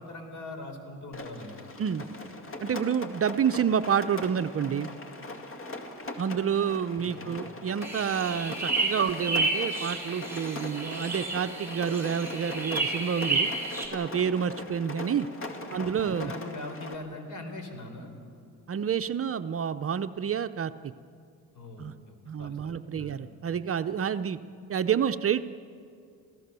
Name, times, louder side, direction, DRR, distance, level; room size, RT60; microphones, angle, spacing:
voice 1, 0.0-1.7 7.0-7.4 15.8-18.1 21.5-23.3, left 2 dB, 50° left, 6 dB, 4.1 m, -42 dB
Rain, 1.1-16.9, left 2 dB, 35° left, 2.4 m, -41 dB
voice 2, 2.6-4.9 6.2-13.5 13.9-15.3 15.7-16.3 18.7-20.7 21.8-21.9 22.3-24.4 24.7-25.4, right 8 dB, 40° right, 10 dB, 0.7 m, -28 dB
sound 1, 7.8-13.9, right 3 dB, 5° right, 6.0 m, -31 dB
27.5 x 16.5 x 6.9 m, 2.4 s
supercardioid pair, 75°, 37 cm